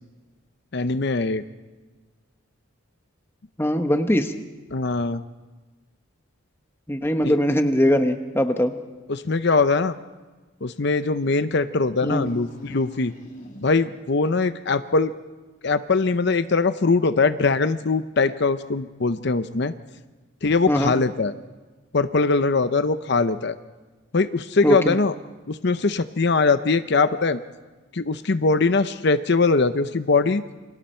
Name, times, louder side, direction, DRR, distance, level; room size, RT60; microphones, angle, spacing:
voice 1, 0.7-1.4 4.7-5.2 7.2-7.4 9.1-9.9 10.6-13.1 13.6-15.1 15.6-19.7 20.4-21.3 21.9-23.5 24.1-25.1 25.5-27.4 27.9-30.4, left 3 dB, 55° left, 11 dB, 0.7 m, -21 dB
voice 2, 3.6-4.3 6.9-8.7 12.0-12.3 20.7-20.9 24.6-25.0, equal, 10° left, 7 dB, 1.1 m, -21 dB
sound 1, 12.1-14.1, left 1 dB, 35° left, 3.4 m, -42 dB
29.0 x 25.5 x 4.5 m, 1.3 s
head